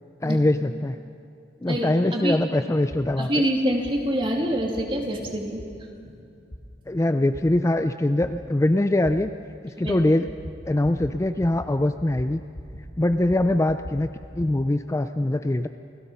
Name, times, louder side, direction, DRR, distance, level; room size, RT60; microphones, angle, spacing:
voice 1, 0.2-1.0 1.6-3.4 6.9-9.3 9.6-10.3 10.7-12.4 13.0-14.1 14.4-15.7, left 1 dB, 15° left, 8 dB, 0.4 m, -23 dB
voice 2, 1.7-2.4 3.2-5.6 9.8-10.0, equal, 30° right, 0 dB, 2.6 m, -25 dB
sound 1, 2.9-3.1 3.8-4.0 4.8-4.9 5.6-5.7 6.5-6.6 7.3-7.4 8.2-8.3 9.0-9.2 9.9-10.0 10.3-10.6 10.8-11.1 11.4-11.7 12.0-12.9 13.1-14.5, equal, 65° left, 2.3 m, -39 dB
29.0 x 16.5 x 5.6 m, 2.5 s
head